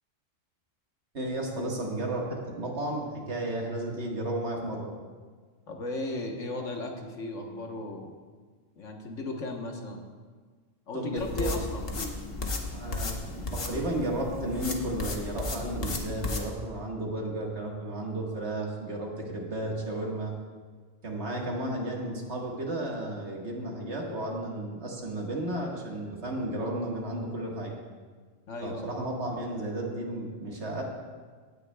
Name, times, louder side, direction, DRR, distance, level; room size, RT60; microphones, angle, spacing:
voice 1, 1.1-4.9 10.9-11.6 12.7-20.3 21.0-27.7 28.6-30.8, right 1 dB, 60° right, -1 dB, 1.7 m, -33 dB
voice 2, 5.7-8.1 8.8-10.0 10.9-12.1 28.5-29.0, left 2 dB, 75° left, 2 dB, 1.4 m, -36 dB
sound 1, 11.2-16.5, left 2 dB, 50° left, 1.2 m, -34 dB
17.0 x 9.9 x 2.2 m, 1.5 s
omnidirectional pair, 1.3 m